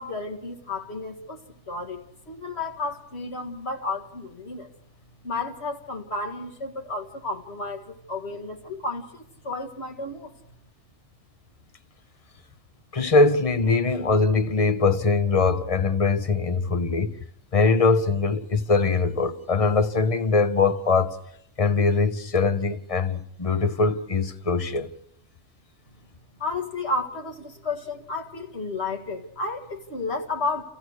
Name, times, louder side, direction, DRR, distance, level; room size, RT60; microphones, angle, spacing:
voice 1, 0.0-4.7 5.2-10.3 26.4-30.6, left 3 dB, 65° left, 2.2 m, -32 dB
voice 2, 12.9-17.2 17.5-21.2 21.6-24.9, left 4 dB, 35° left, 0.9 m, -22 dB
29.0 x 15.0 x 6.4 m
omnidirectional pair, 1.2 m